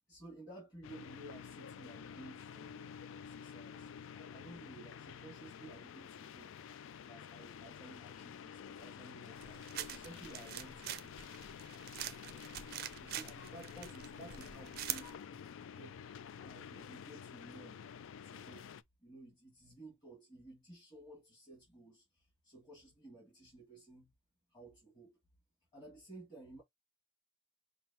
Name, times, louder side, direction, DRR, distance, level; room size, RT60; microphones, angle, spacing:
voice 1, 0.1-6.5 6.8-11.2 13.0-15.1 15.7-16.0 16.4-17.8 18.2-18.7 19.0-24.1 24.5-25.2 25.7-26.6, right 2 dB, 20° left, 1.9 m, -55 dB
sound 1, 0.8-18.8, left 7 dB, 70° left, 0.3 m, -50 dB
sound 2, 9.4-15.1, right 11 dB, 45° right, 0.4 m, -45 dB
6.0 x 2.1 x 2.8 m
head